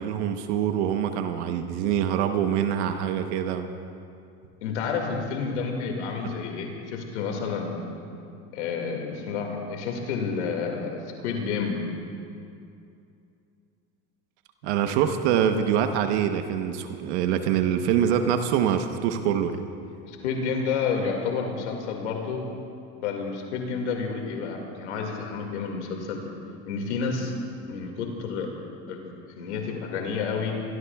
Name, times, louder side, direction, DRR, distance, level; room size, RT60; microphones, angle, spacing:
voice 1, 0.0-3.7 6.2-6.3 14.6-19.6, right 9 dB, 75° right, 7 dB, 1.1 m, -25 dB
voice 2, 4.6-7.8 8.5-11.8 20.0-22.4 23.0-26.2 26.7-27.3 27.7-28.5 28.9-30.6, left 5 dB, 90° left, 2 dB, 2.2 m, -30 dB
25.5 x 19.0 x 2.4 m, 2.6 s
supercardioid pair, 95°, 34 cm